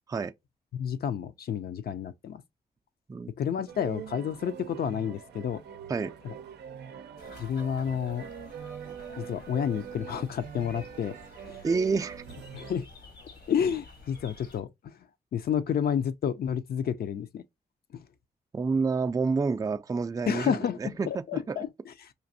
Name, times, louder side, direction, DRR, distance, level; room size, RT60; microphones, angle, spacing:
voice 1, 0.7-2.4 3.4-5.6 6.2-6.3 7.4-8.3 9.2-11.2 11.5-11.6 12.5-12.9 13.5-15.0 15.3-17.4 17.9-18.0 20.3-21.9, left 8 dB, 65° left, 0.5 m, -30 dB
sound 1, 3.7-12.8, right 8 dB, 85° right, 0.5 m, -43 dB
sound 2, 7.2-14.6, left 3 dB, 80° left, 1.3 m, -51 dB
voice 2, 11.6-12.2 18.5-21.6, right 4 dB, 20° right, 0.3 m, -29 dB
5.1 x 2.6 x 2.6 m
cardioid pair, 55°, 17 cm